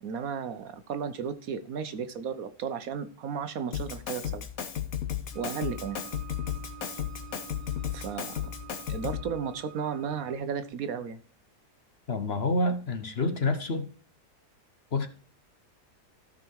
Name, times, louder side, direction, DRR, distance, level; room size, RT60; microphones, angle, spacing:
voice 1, 0.0-4.5 5.3-6.0 7.9-8.4 8.9-11.2, right 7 dB, 65° right, 11 dB, 1.2 m, -34 dB
Drum kit, 3.7-9.3, left 9 dB, 65° left, 1.5 m, -34 dB
sound 1, 5.3-10.3, right 12 dB, 10° left, 2.7 m, -48 dB
voice 2, 12.1-13.9 14.9-15.1, left 2 dB, 45° left, 8 dB, 1.1 m, -28 dB
14.0 x 5.6 x 4.6 m, 0.42 s
omnidirectional pair, 1.7 m